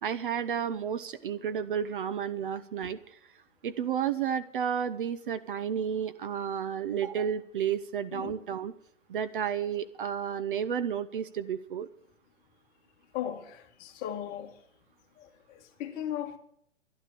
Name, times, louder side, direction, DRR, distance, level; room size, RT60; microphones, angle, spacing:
voice 1, 0.0-3.2 3.6-8.7 9.1-11.9, right 8 dB, 45° right, 0.7 m, -32 dB
voice 2, 13.1-14.6 15.2-16.4, left 10 dB, 25° left, 1.5 m, -37 dB
12.0 x 11.5 x 6.8 m
figure-of-eight pair, 125°, 37 cm